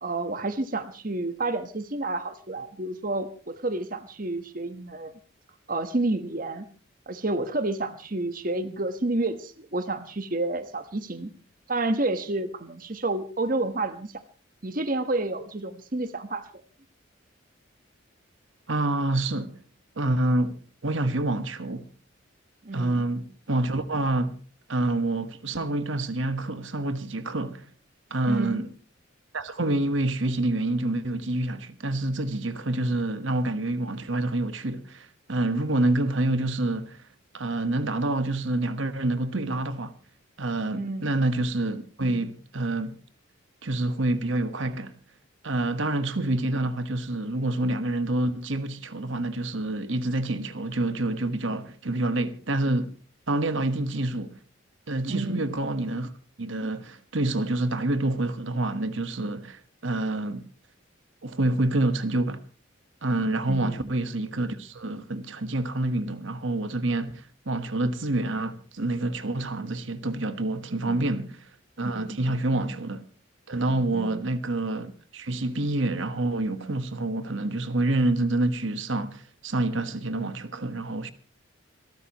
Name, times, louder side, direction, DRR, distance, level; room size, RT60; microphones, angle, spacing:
voice 1, 0.0-5.2 5.7-6.6 7.1-11.3 11.7-14.2 14.6-16.4 22.6-23.0 28.3-28.6 40.7-41.1 55.0-55.4 63.5-63.9 70.9-71.3 72.5-72.7 73.9-74.2, right 2 dB, 40° right, 1.2 m, -30 dB
voice 2, 18.7-19.6 20.0-21.9 22.7-24.4 24.7-27.7 28.1-28.7 29.3-37.0 37.3-39.9 40.4-43.0 43.6-44.9 45.4-52.9 53.3-54.4 54.9-56.1 56.4-60.5 61.2-62.4 63.0-71.5 71.8-73.0 73.5-81.1, right 2 dB, 70° right, 1.3 m, -27 dB
27.5 x 13.0 x 3.0 m
head